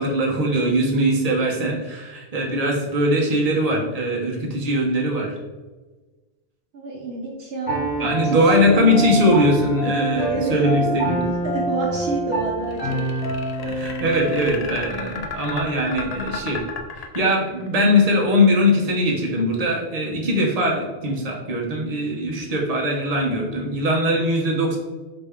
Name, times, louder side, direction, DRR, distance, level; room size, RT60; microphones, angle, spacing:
voice 1, 0.0-5.4 8.0-11.2 13.7-16.6 16.9-24.8, equal, 40° right, -1 dB, 0.9 m, -21 dB
voice 2, 6.7-8.4 9.8-11.0 11.2-13.0, right 3 dB, 70° right, -1 dB, 0.9 m, -29 dB
Piano, 7.7-14.5, right 1 dB, 70° left, 1.2 m, -26 dB
sound 1, 12.7-17.8, left 4 dB, 50° left, 0.5 m, -33 dB
4.0 x 3.4 x 3.5 m, 1.3 s
omnidirectional pair, 1.1 m